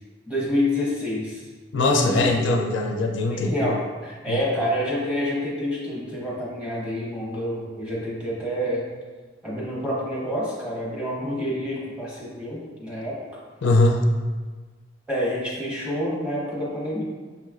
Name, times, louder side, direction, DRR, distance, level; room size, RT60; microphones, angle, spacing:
voice 1, 0.3-1.4 1.9-2.3 3.3-8.8 9.4-13.2 15.1-17.0, equal, 5° right, -7 dB, 1.0 m, -28 dB
voice 2, 1.7-3.7 4.3-4.4 13.6-14.1, left 2 dB, 75° left, 1 dB, 0.4 m, -21 dB
5.6 x 3.2 x 2.4 m, 1.4 s
head